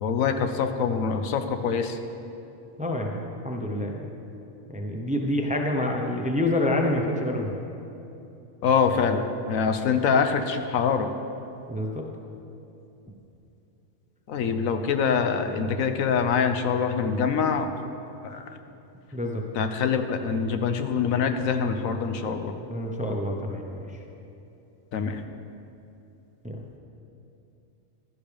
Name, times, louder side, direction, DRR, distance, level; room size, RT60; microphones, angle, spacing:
voice 1, 0.0-2.0 8.6-11.1 14.3-17.7 18.2-18.4 19.6-22.5 24.9-25.2, left 6 dB, 80° left, 7 dB, 1.2 m, -24 dB
voice 2, 2.8-4.0 4.7-7.5 11.7-12.0 19.1-19.4 22.7-23.8 26.4-26.6, left 1 dB, 5° right, 1 dB, 0.7 m, -27 dB
15.5 x 12.5 x 3.5 m, 2.8 s
omnidirectional pair, 1.4 m